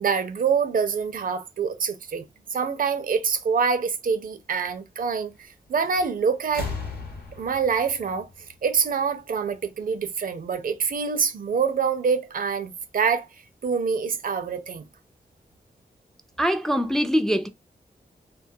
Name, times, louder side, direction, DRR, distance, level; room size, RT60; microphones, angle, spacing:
voice 1, 0.0-2.2 2.5-6.7 7.3-8.3 8.6-13.3 13.6-14.8, right 6 dB, 65° right, 0.4 m, -25 dB
sound 1, 5.8-6.1 6.4-9.2 10.3-10.4, left 4 dB, 85° left, 1.0 m, -37 dB
voice 2, 16.4-17.5, equal, 5° left, 0.3 m, -23 dB
2.3 x 2.1 x 2.6 m
cardioid pair, 65°, 16 cm